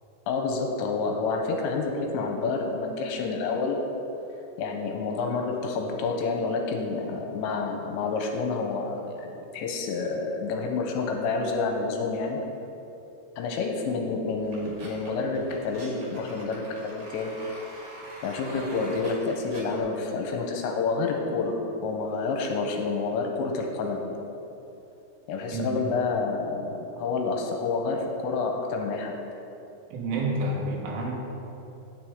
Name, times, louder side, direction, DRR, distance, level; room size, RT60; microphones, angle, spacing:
voice 1, 0.3-3.8 4.6-12.4 13.4-17.4 18.2-24.2 25.3-29.1, left 4 dB, 85° left, 2 dB, 2.9 m, -29 dB
sound 1, 14.4-19.8, right 1 dB, 50° right, 2.1 m, -45 dB
voice 2, 29.9-31.1, right 2 dB, 85° right, -2 dB, 3.8 m, -29 dB
9.6 x 9.0 x 3.6 m, 2.9 s
omnidirectional pair, 5.4 m